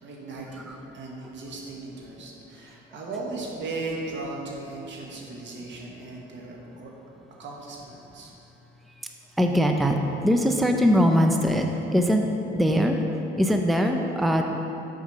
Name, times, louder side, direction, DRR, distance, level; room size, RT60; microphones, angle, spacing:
voice 1, 0.0-6.9 7.4-8.3, right 3 dB, 70° right, -1 dB, 1.5 m, -37 dB
voice 2, 9.4-10.0 10.2-11.6 11.9-12.2 12.5-13.0 13.4-14.4, equal, ahead, 3 dB, 0.5 m, -21 dB
6.5 x 5.0 x 6.5 m, 2.9 s
cardioid pair, 90°, 20 cm